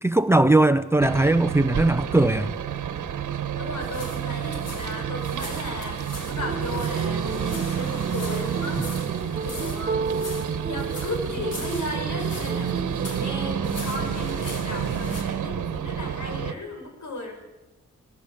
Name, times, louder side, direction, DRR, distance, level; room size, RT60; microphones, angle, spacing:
voice 1, 0.0-2.5, right 2 dB, 10° right, 13 dB, 0.8 m, -19 dB
sound 1, 1.0-16.5, right 8 dB, 90° right, 1.5 m, -29 dB
voice 2, 3.6-10.1 10.6-17.3, left 2 dB, 80° left, 3 dB, 7.1 m, -35 dB
sound 2, 3.8-15.2, left 2 dB, 55° left, 5.6 m, -41 dB
sound 3, 6.4-13.4, right 4 dB, 30° right, 1.1 m, -33 dB
26.0 x 19.0 x 8.7 m, 1.1 s
wide cardioid pair, 120°, 30 cm